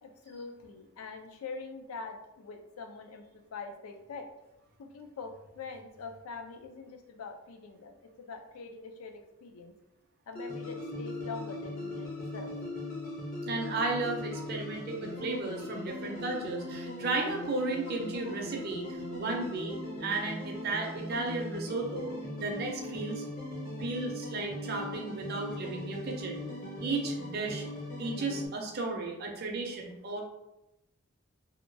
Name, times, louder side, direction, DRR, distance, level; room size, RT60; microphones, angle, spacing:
voice 1, 0.0-4.3 4.8-9.7 10.3-12.5 14.3-14.4 17.9-18.0, left 4 dB, 80° left, 4 dB, 0.4 m, -44 dB
sound 1, 10.3-28.5, left 1 dB, 40° left, 0.6 m, -39 dB
voice 2, 13.4-19.7 20.0-22.1 22.4-23.2 23.8-26.4 26.8-27.6 28.0-30.2, right 3 dB, 45° right, 1 dB, 0.5 m, -34 dB
2.8 x 2.2 x 2.5 m, 0.90 s
head